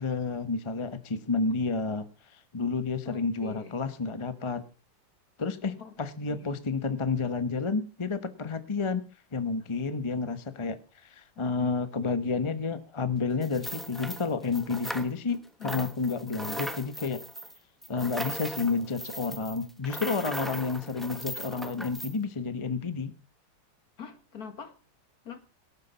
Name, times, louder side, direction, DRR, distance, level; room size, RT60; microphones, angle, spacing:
voice 1, 0.0-2.1 2.5-4.6 5.4-9.0 9.3-10.8 11.0-17.2 17.9-23.1, left 4 dB, 20° left, 0.9 m, -30 dB
voice 2, 3.0-3.8 5.8-6.0 6.3-6.5 11.4-11.7 15.6-15.9 24.0-24.8 25.2-25.4, left 6 dB, 50° left, 2.0 m, -44 dB
sound 1, 13.4-15.4 15.6-22.1, equal, ahead, 0.4 m, -38 dB
18.5 x 8.2 x 5.7 m
omnidirectional pair, 2.1 m